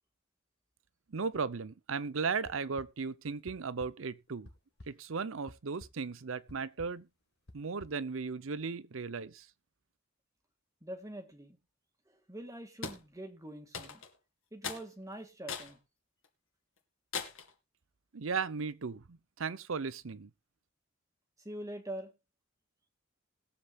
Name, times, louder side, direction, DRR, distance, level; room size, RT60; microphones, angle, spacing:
voice 1, 1.1-4.5 4.9-7.1 7.5-9.5 18.1-20.3, right 5 dB, 75° right, 0.7 m, -36 dB
sound 1, 2.4-2.9 3.5-3.9 4.3-4.9 5.5-5.9 6.5-6.9 7.5-7.9, left 1 dB, 55° left, 1.6 m, -50 dB
voice 2, 10.8-11.6 12.3-14.0 14.5-15.8 21.5-22.1, right 1 dB, 15° right, 1.8 m, -44 dB
sound 2, 12.8-13.0 13.7-14.2 14.6-14.9 15.5-15.7 16.2-16.3 17.1-17.5, left 6 dB, 80° left, 2.3 m, -39 dB
20.5 x 7.8 x 2.4 m
head